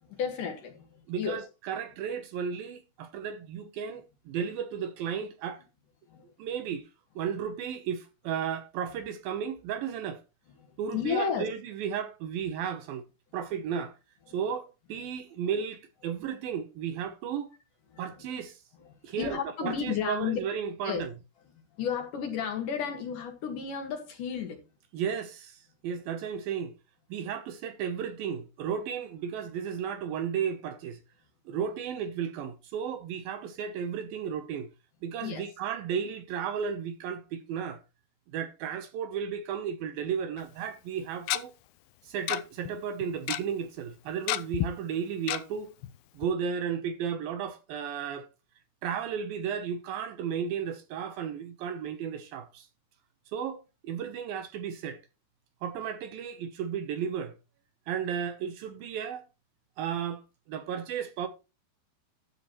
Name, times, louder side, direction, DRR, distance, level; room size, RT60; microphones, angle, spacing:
voice 1, 0.0-1.4 6.1-6.3 10.6-11.5 14.3-14.4 17.9-18.3 18.8-20.4 20.8-21.0 21.5-24.6 35.2-35.4, left 7 dB, 60° left, 2.9 m, -33 dB
voice 2, 1.1-5.6 6.4-6.9 7.2-10.2 10.8-13.1 13.3-13.9 14.3-17.5 18.0-18.6 19.0-21.1 24.9-26.7 27.1-31.0 31.5-34.7 35.0-37.8 38.3-41.5 42.0-45.7 46.1-48.3 48.8-52.7 53.3-55.0 55.6-57.3 57.9-59.3 59.8-61.3, right 7 dB, 75° right, 2.5 m, -34 dB
Tick-tock, 40.4-40.5 41.3-41.4 42.3-42.4 42.7-42.8 43.0-43.4 44.3-44.7 45.3-45.4 45.8-45.9 46.2-46.3, left 14 dB, 85° left, 2.1 m, -29 dB
12.5 x 8.5 x 3.0 m
omnidirectional pair, 4.7 m